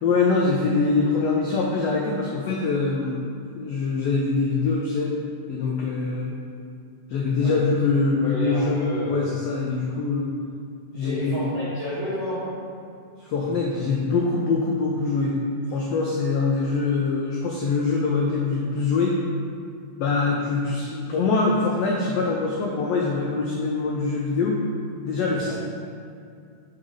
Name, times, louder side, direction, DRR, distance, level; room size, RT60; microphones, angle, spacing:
voice 1, 0.0-5.1 5.5-6.3 7.1-10.3 10.9-11.4 13.2-15.4 15.7-19.2 20.0-24.6 25.0-25.5, left 4 dB, 90° left, -2 dB, 1.4 m, -24 dB
voice 2, 8.2-9.3 10.9-12.6 25.2-25.5, left 1 dB, 35° right, -12 dB, 0.9 m, -31 dB
5.7 x 3.9 x 4.8 m, 2.3 s
omnidirectional pair, 3.6 m